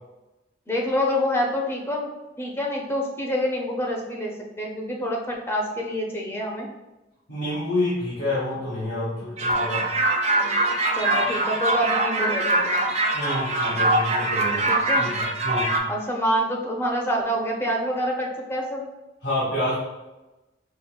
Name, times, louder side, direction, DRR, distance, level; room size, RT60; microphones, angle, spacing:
voice 1, 0.7-2.1 2.4-6.7 10.4-10.5 10.9-12.8 14.7-15.1 15.9-18.9, equal, 15° left, -1 dB, 0.6 m, -27 dB
voice 2, 7.3-9.9 13.1-15.8 19.2-19.8, left 1 dB, 80° left, -9 dB, 1.4 m, -28 dB
sound 1, 9.4-15.8, right 1 dB, 40° right, 0.4 m, -23 dB
5.3 x 2.2 x 2.2 m, 1.0 s
head